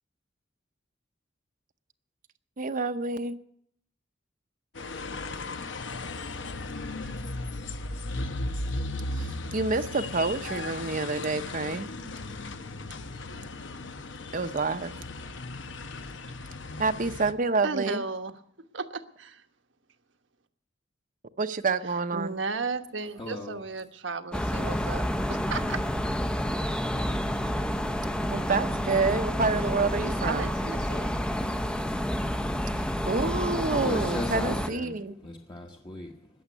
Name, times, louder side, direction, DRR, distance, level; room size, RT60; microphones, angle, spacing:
voice 1, 2.6-3.4 9.2-11.9 14.3-14.9 16.8-18.0 21.4-22.3 28.3-30.5 33.1-35.2, right 3 dB, 45° right, 8 dB, 0.8 m, -28 dB
sound 1, 4.7-17.3, left 2 dB, 75° left, 0.9 m, -36 dB
voice 2, 17.6-18.3 18.7-19.4 22.1-25.9 30.2-31.1 33.5-33.6, right 4 dB, 75° right, 8 dB, 1.2 m, -34 dB
voice 3, 23.2-23.6 33.7-35.0 35.2-36.3, left 2 dB, 25° left, 1 dB, 1.2 m, -37 dB
sound 2, 24.3-34.7, equal, 5° left, 0.7 m, -29 dB
20.5 x 7.3 x 8.3 m, 0.67 s
head